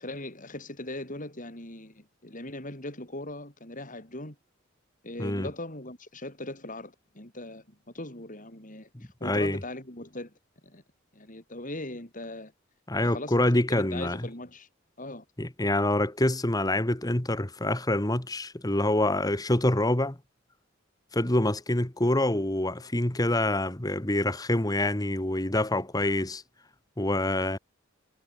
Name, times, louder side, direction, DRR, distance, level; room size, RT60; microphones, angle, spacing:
voice 1, 0.0-4.4 5.0-8.9 9.2-10.3 10.6-10.8 11.1-12.5 13.0-13.4 13.7-14.7 15.0-15.2, left 1 dB, 40° left, 6.3 m, -39 dB
voice 2, 8.9-9.6 12.9-14.2 15.4-20.2 21.1-26.4 27.0-27.6, left 1 dB, 20° left, 1.6 m, -26 dB
head